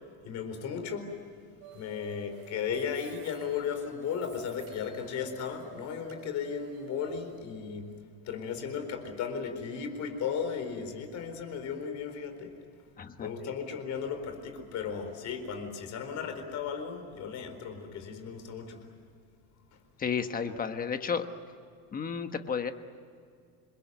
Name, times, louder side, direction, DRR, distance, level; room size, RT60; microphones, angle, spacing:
voice 1, 0.2-1.1 1.7-7.9 8.2-12.5 13.2-18.9 19.7-19.8, left 6 dB, 40° left, 7 dB, 4.3 m, -35 dB
sound 1, 1.6-7.4, right 10 dB, 50° right, 5.8 m, -52 dB
voice 2, 13.0-13.3 20.0-21.3 21.9-22.7, left 6 dB, 20° left, 8 dB, 1.2 m, -32 dB
28.0 x 21.5 x 9.3 m, 2.3 s
cardioid pair, 160°, 42 cm